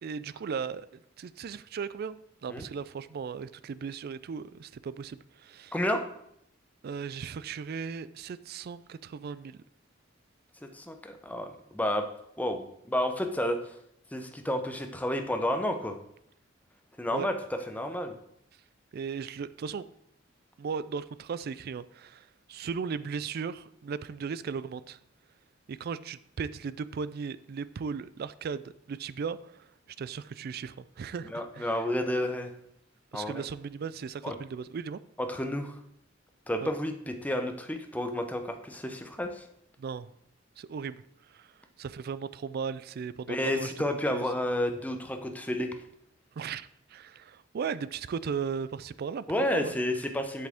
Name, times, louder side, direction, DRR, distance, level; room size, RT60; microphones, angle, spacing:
voice 1, 0.0-0.9 1.2-5.7 6.8-9.6 17.1-17.3 18.9-19.9 20.6-25.0 25.7-29.7 30.0-31.7 33.1-35.0 36.6-36.7 39.8-40.1 40.6-41.5 41.8-43.7 44.1-44.2 46.4-50.0, right 6 dB, 55° right, 0.3 m, -37 dB
voice 2, 5.7-6.0 10.7-12.1 12.4-13.7 14.1-16.0 17.0-18.2 31.3-32.5 33.1-33.4 34.2-34.3 35.2-35.7 36.5-39.4 43.3-45.7 49.3-50.5, left 1 dB, 10° left, 0.7 m, -31 dB
7.5 x 7.5 x 3.6 m
head